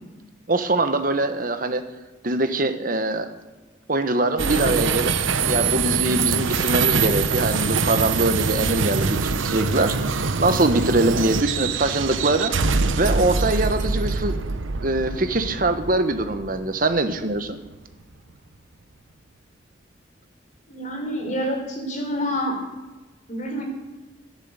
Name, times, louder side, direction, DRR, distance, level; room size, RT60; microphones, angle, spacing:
voice 1, 0.5-1.8 2.2-3.3 3.9-12.5 13.0-14.3 14.8-17.6, right 2 dB, 45° right, 9 dB, 1.2 m, -23 dB
sound 1, 4.4-17.8, right 5 dB, 90° right, 0.9 m, -24 dB
voice 2, 20.7-22.6 23.3-23.6, equal, 40° left, 1 dB, 3.9 m, -27 dB
13.0 x 11.0 x 8.1 m, 1.1 s
head